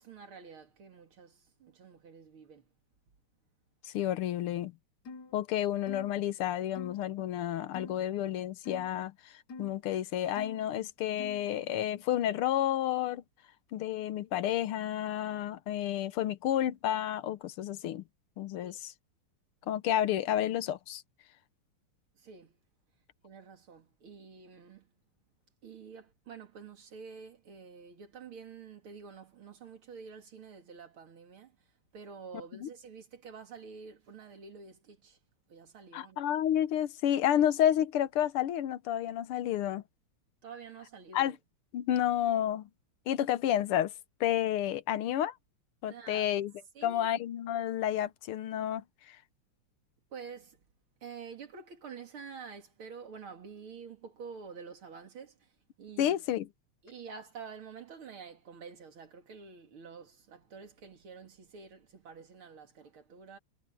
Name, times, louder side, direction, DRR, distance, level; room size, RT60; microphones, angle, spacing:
voice 1, 0.0-2.7 18.6-18.8 22.1-22.6 23.2-24.9 25.6-31.6 31.9-35.2 35.5-36.3 40.4-41.4 45.9-46.3 46.7-47.1 50.1-50.6 51.0-55.5 55.8-56.2 56.8-63.4, right 5 dB, 70° right, 3.3 m, -48 dB
voice 2, 3.9-4.7 5.3-9.1 9.6-13.2 13.7-18.0 18.4-18.9 19.7-21.0 32.6-32.7 35.9-39.8 41.1-41.4 41.7-42.7 43.1-43.9 44.2-45.3 45.8-46.5 46.8-48.8 56.0-56.5, left 11 dB, 80° left, 1.8 m, -30 dB
sound 1, 5.1-5.3 5.9-6.1 6.8-7.0 7.7-8.0 8.7-8.9 9.5-9.7 10.4-10.6 11.2-11.5, left 3 dB, 55° left, 1.6 m, -45 dB
omnidirectional pair, 2.4 m